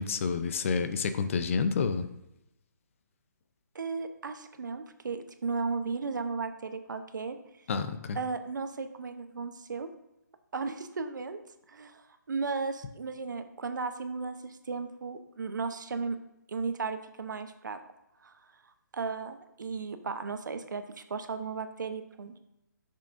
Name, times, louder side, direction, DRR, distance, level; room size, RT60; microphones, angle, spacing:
voice 1, 0.0-2.1 7.7-8.2, left 5 dB, 40° left, 10 dB, 0.6 m, -29 dB
voice 2, 3.7-7.4 8.1-9.9 10.5-11.4 11.7-16.2 16.5-17.8 18.2-18.3 18.9-22.3, right 4 dB, 70° right, 8 dB, 0.9 m, -35 dB
10.0 x 6.5 x 2.6 m, 0.87 s
hypercardioid pair, 150°, 11 cm